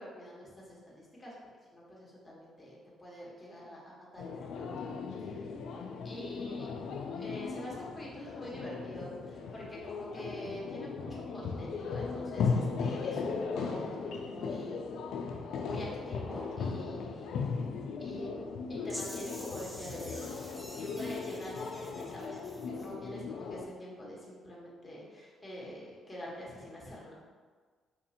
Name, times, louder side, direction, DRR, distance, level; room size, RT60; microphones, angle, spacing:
voice 1, 0.0-1.3 1.7-4.9 5.2-5.5 6.0-6.7 7.1-14.9 15.3-17.3 18.0-18.3 18.7-27.1, left 1 dB, 10° left, -5 dB, 1.1 m, -45 dB
sound 1, 4.2-23.6, left 5 dB, 75° left, 0.3 m, -37 dB
sound 2, 18.9-22.9, equal, 5° right, 0.5 m, -47 dB
4.0 x 2.6 x 2.8 m, 1.6 s
cardioid pair, 90°, 0 cm